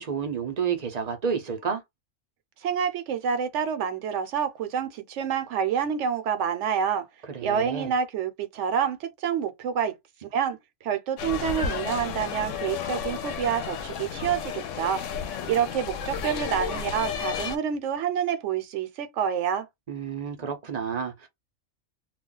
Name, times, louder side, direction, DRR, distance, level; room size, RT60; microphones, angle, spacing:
voice 1, 0.0-1.8 7.3-7.9 19.9-21.3, right 6 dB, 45° right, 0.6 m, -30 dB
voice 2, 2.6-7.1 7.4-9.9 10.3-10.6 10.8-15.0 15.5-19.7, right 7 dB, 70° right, 0.9 m, -27 dB
sound 1, 11.2-17.6, left 7 dB, 75° left, 0.9 m, -32 dB
2.4 x 2.2 x 3.7 m
omnidirectional pair, 1.3 m